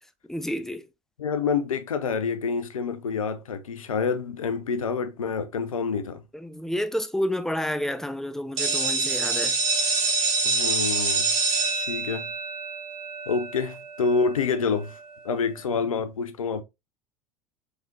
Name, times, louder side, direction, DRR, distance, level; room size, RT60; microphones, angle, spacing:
voice 1, 0.3-0.8 6.3-9.6, left 1 dB, ahead, 0.5 m, -29 dB
voice 2, 1.2-6.2 10.4-11.3 11.7-12.3 13.3-15.0 15.2-16.6, left 5 dB, 80° left, 0.6 m, -27 dB
sound 1, 8.6-14.2, right 4 dB, 50° right, 2.5 m, -26 dB
4.8 x 3.8 x 2.7 m
figure-of-eight pair, 75°, 17 cm